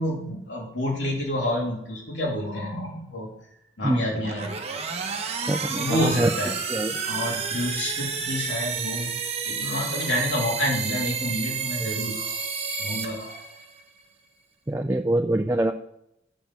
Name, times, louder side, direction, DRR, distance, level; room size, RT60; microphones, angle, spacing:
voice 1, 0.0-3.3 3.8-4.5 5.7-6.6 7.0-9.2 9.4-12.4 12.7-13.4, left 1 dB, 75° left, -2 dB, 2.8 m, -28 dB
sound 1, 4.1-13.8, right 6 dB, 35° right, 0.9 m, -31 dB
voice 2, 5.5-6.3 6.7-6.9 14.7-15.7, right 1 dB, 15° right, 5 dB, 0.4 m, -24 dB
7.1 x 5.6 x 7.3 m, 0.78 s
head